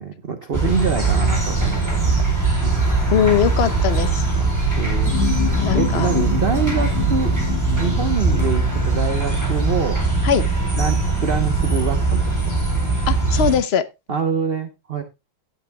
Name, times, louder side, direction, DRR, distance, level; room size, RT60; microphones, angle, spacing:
voice 1, 0.0-2.1 2.6-3.1 4.3-4.5 4.8-5.1 5.7-7.3 7.8-10.0 10.7-12.7 14.1-15.0, right 6 dB, 40° right, 1.0 m, -25 dB
sound 1, 0.5-13.6, right 3 dB, 10° right, 4.4 m, -20 dB
voice 2, 3.1-4.2 5.6-6.1 10.2-10.4 13.1-13.9, left 8 dB, 50° left, 0.8 m, -20 dB
sound 2, 5.1-10.7 11.1-11.2, left 11 dB, 80° left, 1.6 m, -28 dB
17.0 x 8.2 x 2.2 m
omnidirectional pair, 1.9 m